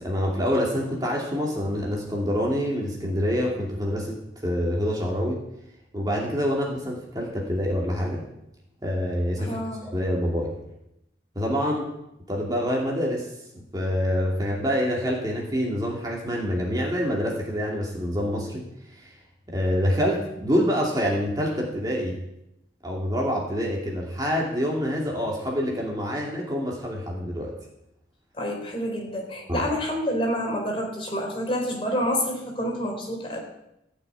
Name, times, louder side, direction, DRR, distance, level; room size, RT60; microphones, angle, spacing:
voice 1, 0.0-4.2 4.4-5.4 5.9-8.2 8.8-9.6 9.8-10.5 11.4-11.9 12.3-13.3 13.5-18.6 18.9-19.1 19.5-22.2 22.8-27.5 29.5-29.7, equal, 20° right, -2 dB, 2.5 m, -26 dB
voice 2, 9.4-9.8 28.3-33.4, equal, 30° left, 1 dB, 3.6 m, -28 dB
15.5 x 6.3 x 9.2 m, 0.84 s
head